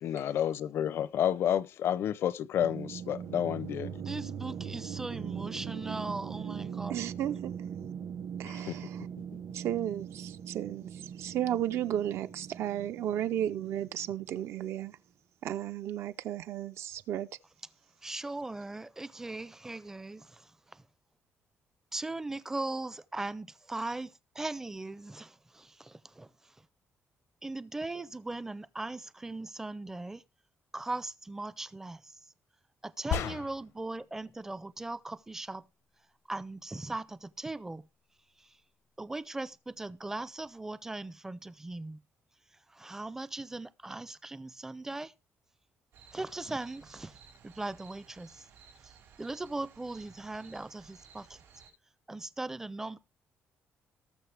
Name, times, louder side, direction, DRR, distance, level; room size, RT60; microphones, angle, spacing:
voice 1, 0.0-3.9 8.4-8.8, left 10 dB, 60° left, 0.6 m, -30 dB
sound 1, 2.6-14.7, right 8 dB, 55° right, 0.9 m, -41 dB
voice 2, 4.0-7.1 18.0-20.8 21.9-26.6 27.4-30.2 30.7-32.2 32.8-35.7 36.3-37.9 38.4-38.6 39.0-42.0 42.7-45.1 46.1-47.2 47.4-48.5 48.8-48.9 49.2-51.4 52.1-53.0, right 2 dB, 10° right, 0.4 m, -39 dB
voice 3, 6.9-7.5 8.4-9.0 9.5-15.0 15.4-17.3, right 11 dB, 75° right, 0.6 m, -34 dB
sound 2, 33.1-33.8, left 9 dB, 85° left, 0.9 m, -33 dB
sound 3, 45.9-51.7, right 6 dB, 90° right, 5.4 m, -57 dB
19.0 x 6.5 x 3.4 m
cardioid pair, 170°, 5 cm